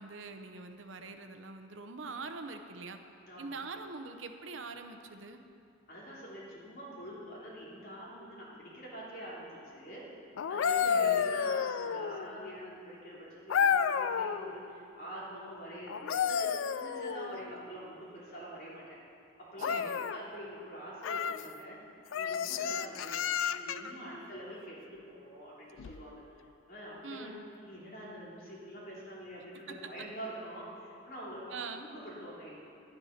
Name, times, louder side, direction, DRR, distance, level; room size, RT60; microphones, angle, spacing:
voice 1, 0.0-3.0 3.4-5.4 10.8-11.2 19.6-20.0 27.0-27.4 31.5-31.8, right 4 dB, 70° right, 7 dB, 0.8 m, -43 dB
voice 2, 3.3-3.6 5.9-10.0 10.5-16.5 16.8-19.0 19.4-21.8 22.1-26.2 26.7-27.3 27.6-32.6, equal, 50° left, -6 dB, 3.1 m, -45 dB
sound 1, 10.4-12.4 13.5-14.5 15.9-17.5 19.6-20.2 21.0-21.4 22.1-23.9 25.8-26.0, left 7 dB, 80° left, 0.4 m, -31 dB
10.5 x 10.0 x 5.8 m, 2.5 s
head